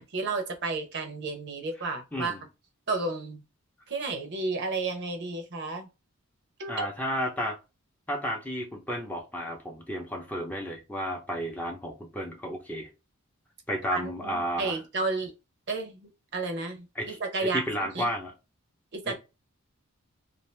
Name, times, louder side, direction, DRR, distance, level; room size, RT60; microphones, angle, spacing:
voice 1, 0.0-2.4 2.9-3.4 3.9-5.9 6.6-6.8 13.9-15.3 15.7-17.6 17.9-18.1 18.9-19.1, right 3 dB, 55° right, 0.8 m, -32 dB
voice 2, 6.7-7.6 8.1-12.9 13.7-14.8 16.9-18.3 19.1-19.2, equal, 10° left, 0.7 m, -32 dB
2.7 x 2.5 x 3.2 m
head